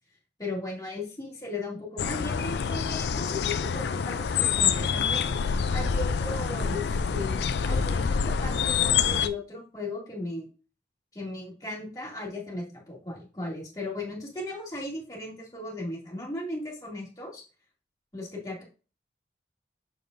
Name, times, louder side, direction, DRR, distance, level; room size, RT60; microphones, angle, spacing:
voice 1, 0.4-5.3 5.7-10.5 11.1-17.4 18.1-18.6, left 2 dB, 20° left, -5 dB, 2.4 m, -36 dB
sound 1, 2.0-9.3, left 6 dB, 70° left, 0.4 m, -26 dB
6.9 x 5.3 x 2.6 m, 0.36 s
head